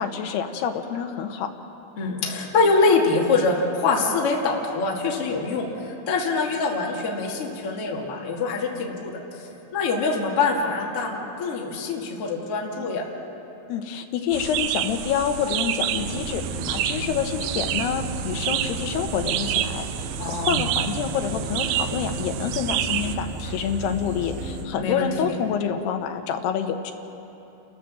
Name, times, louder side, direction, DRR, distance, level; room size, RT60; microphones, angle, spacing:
voice 1, 0.0-1.5 13.7-26.9, left 8 dB, 75° left, 5 dB, 2.8 m, -27 dB
voice 2, 2.0-9.1 9.7-13.0 20.2-20.6 24.8-25.1, left 4 dB, 40° left, -2 dB, 2.5 m, -24 dB
sound 1, 14.3-23.2, right 12 dB, 80° right, 2.8 m, -29 dB
sound 2, 15.9-24.7, right 2 dB, 65° right, 3.3 m, -34 dB
30.0 x 13.5 x 7.4 m, 3.0 s
omnidirectional pair, 5.3 m